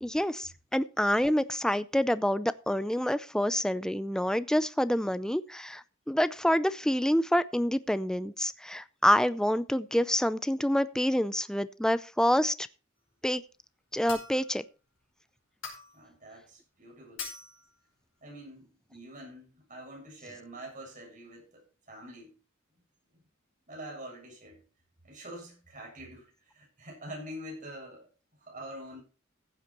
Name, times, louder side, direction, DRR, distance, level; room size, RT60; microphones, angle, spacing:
voice 1, 0.0-12.7 13.2-13.4 13.9-14.6, equal, 5° left, 0.5 m, -27 dB
sound 1, 14.1-14.5 15.6-16.0 17.2-17.7, left 5 dB, 70° left, 5.2 m, -41 dB
voice 2, 15.9-17.3 18.2-22.3 23.7-24.6 25.0-28.1 28.5-29.0, right 1 dB, 40° right, 7.2 m, -45 dB
15.0 x 8.3 x 4.4 m
head